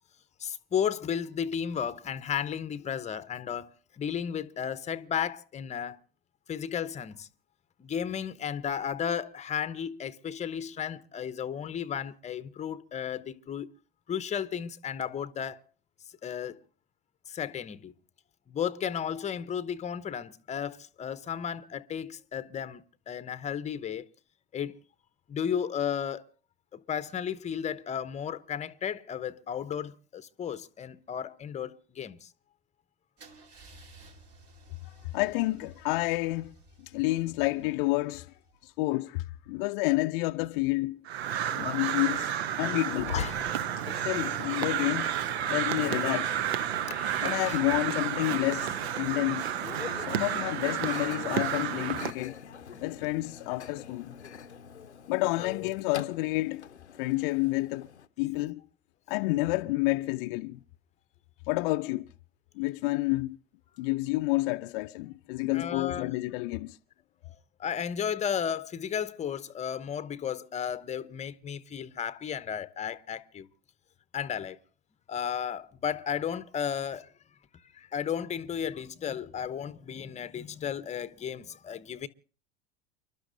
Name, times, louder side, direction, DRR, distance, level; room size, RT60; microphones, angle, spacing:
voice 1, 0.4-6.0 6.5-7.3 7.8-13.7 14.1-15.6 16.2-16.6 17.3-17.9 18.5-24.1 24.5-24.8 25.3-26.2 26.7-32.3 43.1-43.4 46.9-47.6 55.4-55.7 65.5-66.1 67.2-67.3 67.6-73.5 74.1-74.6 75.1-77.1 77.8-82.1, left 8 dB, 20° left, 0.8 m, -34 dB
Car / Engine starting / Idling, 33.2-39.0, right 1 dB, 45° right, 2.5 m, -55 dB
voice 2, 34.8-36.5 36.8-38.3 38.6-41.0 41.5-43.1 43.9-45.2 45.5-46.4 47.2-49.5 49.9-52.4 52.8-54.2 55.1-56.6 57.0-57.9 58.2-58.6 59.1-60.6 61.5-62.1 62.6-63.4 63.8-66.8, left 21 dB, 50° left, 0.5 m, -29 dB
Crow, 41.1-52.1, right 10 dB, 70° right, 0.8 m, -31 dB
Microwave oven, 43.0-58.1, left 7 dB, 90° left, 0.7 m, -44 dB
30.0 x 12.0 x 2.6 m
figure-of-eight pair, 80°, 33 cm